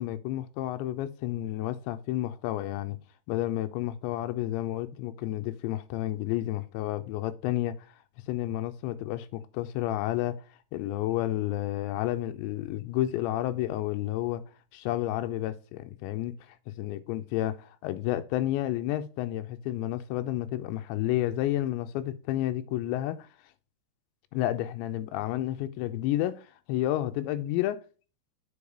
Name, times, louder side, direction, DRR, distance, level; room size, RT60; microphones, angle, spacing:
voice 1, 0.0-3.0 3.3-7.7 8.3-10.4 10.7-14.4 14.7-23.3 24.3-27.8, left 14 dB, 80° left, 2.8 m, -31 dB
6.9 x 4.7 x 4.8 m
omnidirectional pair, 5.3 m